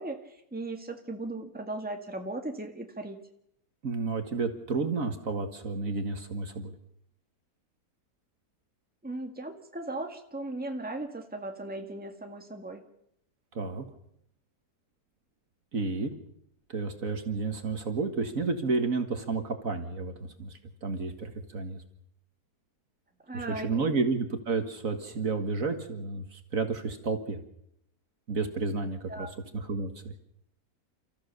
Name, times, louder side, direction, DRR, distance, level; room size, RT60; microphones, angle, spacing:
voice 1, 0.0-3.2 9.0-12.8 23.3-24.0 29.1-29.3, right 2 dB, 5° right, 4 dB, 1.9 m, -37 dB
voice 2, 3.8-6.7 13.5-13.9 15.7-16.1 16.7-21.8 23.3-27.4 28.3-30.1, right 4 dB, 55° right, 7 dB, 2.1 m, -31 dB
30.0 x 14.5 x 6.7 m, 0.75 s
omnidirectional pair, 1.7 m